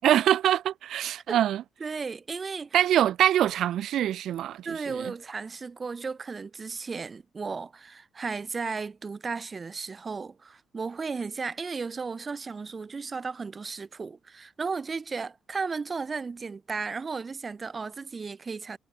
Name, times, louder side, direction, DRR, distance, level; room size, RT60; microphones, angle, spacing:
voice 1, 0.0-1.6 2.7-5.1, right 11 dB, 75° right, 3.0 m, -24 dB
voice 2, 1.8-2.8 4.7-18.8, right 4 dB, 35° right, 5.2 m, -35 dB
cardioid pair, 90°, 0 cm